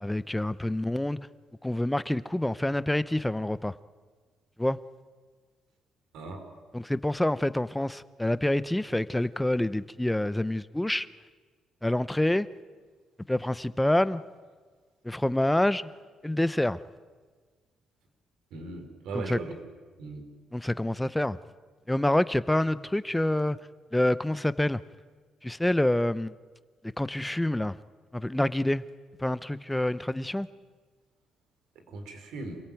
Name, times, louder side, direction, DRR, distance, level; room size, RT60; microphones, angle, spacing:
voice 1, 0.0-1.3 1.6-3.7 4.6-4.8 6.7-11.1 11.8-12.5 13.3-14.2 15.0-15.9 16.2-16.8 19.1-19.4 20.5-21.4 21.9-23.6 23.9-24.8 25.4-26.3 27.0-27.8 28.1-28.8 29.2-30.5, left 1 dB, 10° left, 16 dB, 0.7 m, -27 dB
voice 2, 6.1-6.5 18.5-19.5 20.0-20.2 31.9-32.6, right 3 dB, 85° right, 5 dB, 4.4 m, -38 dB
27.0 x 16.5 x 9.1 m, 1.5 s
cardioid pair, 90°, 0 cm